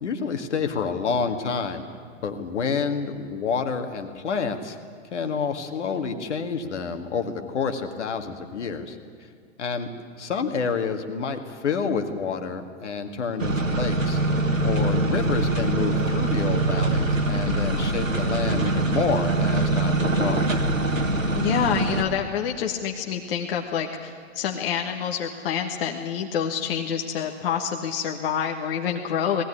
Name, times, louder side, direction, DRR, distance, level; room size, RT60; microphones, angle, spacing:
voice 1, 0.0-1.8 2.2-4.8 5.1-9.0 9.6-9.9 10.2-14.2 14.6-20.4, left 5 dB, 65° left, 6 dB, 2.1 m, -28 dB
sound 1, 13.4-22.0, right 2 dB, 90° right, 2.0 m, -23 dB
voice 2, 17.5-17.9 21.3-29.4, left 8 dB, 45° left, 2 dB, 1.5 m, -27 dB
19.5 x 16.0 x 9.8 m, 2.1 s
figure-of-eight pair, 110°, 38 cm